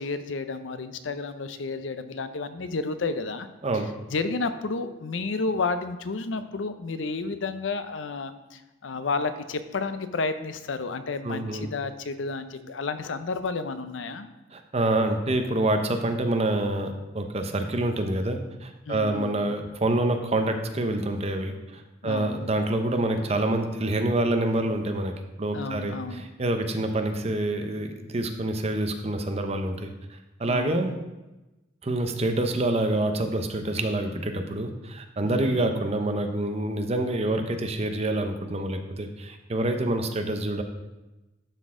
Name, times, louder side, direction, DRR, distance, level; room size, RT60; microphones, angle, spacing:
voice 1, 0.0-3.5 4.1-14.3 18.9-19.4 22.0-22.4 25.5-26.3 30.5-30.8 35.2-35.6, left 3 dB, 90° left, 10 dB, 0.6 m, -31 dB
voice 2, 11.2-11.7 14.5-30.9 31.8-40.6, right 1 dB, 35° right, 6 dB, 0.7 m, -27 dB
12.0 x 4.1 x 3.7 m, 1.0 s
head